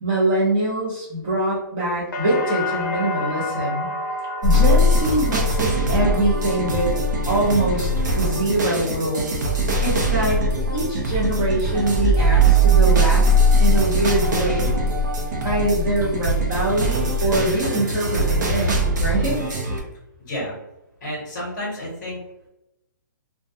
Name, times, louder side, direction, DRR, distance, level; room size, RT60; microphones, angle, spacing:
voice 1, 0.0-3.9 4.4-7.0 7.3-7.9 8.2-9.3 9.8-10.4 10.7-13.3 13.6-14.8 15.4-19.4, right 1 dB, 20° right, -7 dB, 0.7 m, -23 dB
sound 1, 2.1-10.0 10.4-11.1, left 1 dB, 70° left, 0.5 m, -32 dB
sound 2, 4.4-19.8, right 1 dB, 60° right, 0.6 m, -20 dB
sound 3, 11.7-15.7, right 5 dB, 85° right, 0.9 m, -36 dB
voice 2, 20.2-20.5 21.0-22.2, left 1 dB, 30° left, -5 dB, 0.9 m, -30 dB
2.2 x 2.2 x 2.7 m, 0.89 s
hypercardioid pair, 175°, 11 cm